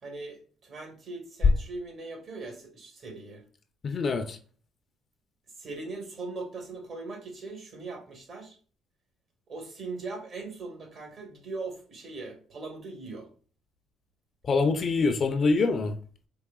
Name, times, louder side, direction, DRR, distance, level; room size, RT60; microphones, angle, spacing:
voice 1, 0.0-3.4 5.6-8.6 9.5-13.3 15.4-15.5, right 3 dB, 55° right, 1.8 m, -40 dB
voice 2, 3.8-4.4 14.4-15.9, left 4 dB, 40° left, 0.5 m, -25 dB
4.7 x 3.3 x 2.3 m
cardioid pair, 95°, 0 cm